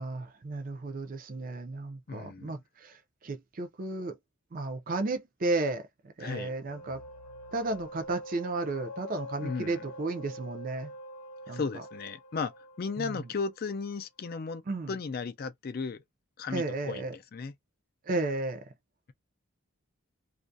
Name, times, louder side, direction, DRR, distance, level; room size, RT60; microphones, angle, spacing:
voice 1, 0.0-4.2 4.5-5.8 6.2-7.0 7.5-10.9 11.5-11.6 13.0-13.1 14.7-15.0 16.5-17.1 18.0-18.6, right 2 dB, 40° right, 0.5 m, -33 dB
voice 2, 2.1-2.5 6.2-6.5 9.4-9.9 11.5-14.6 14.9-16.0 16.4-17.5, left 4 dB, 45° left, 0.4 m, -35 dB
sound 1, 6.7-14.0, left 1 dB, 90° left, 0.6 m, -45 dB
2.4 x 2.1 x 2.5 m
head